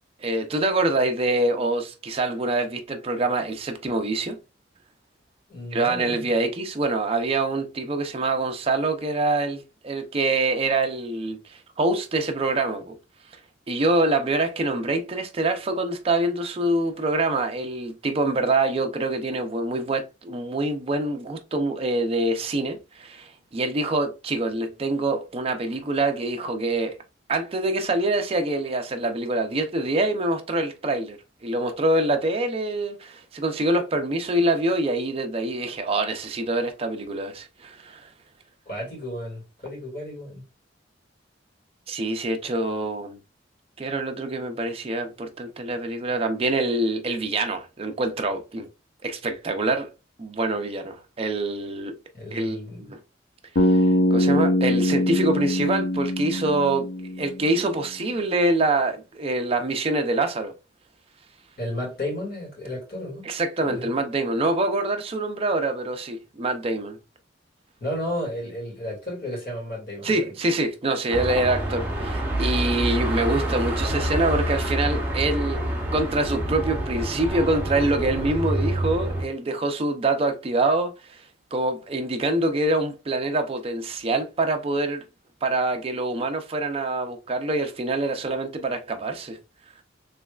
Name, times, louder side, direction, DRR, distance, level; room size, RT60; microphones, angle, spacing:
voice 1, 0.2-4.4 5.7-13.0 13.7-27.0 27.3-31.2 31.4-38.1 41.9-43.2 43.8-48.7 49.0-49.9 50.2-52.0 52.3-53.0 53.6-53.8 54.1-56.9 57.2-60.5 63.2-67.0 70.0-75.6 75.9-81.2 81.5-85.0 85.4-89.4, right 2 dB, 30° right, 0.5 m, -25 dB
voice 2, 5.5-6.2 38.7-40.4 52.1-53.0 61.6-63.3 63.6-63.9 67.8-70.2, left 1 dB, 55° left, 2.1 m, -33 dB
Bass guitar, 53.6-57.6, left 1 dB, 90° left, 0.6 m, -22 dB
Car passing by / Traffic noise roadway noise / Engine, 71.1-79.2, right 1 dB, 10° right, 0.9 m, -27 dB
3.2 x 3.1 x 2.3 m
head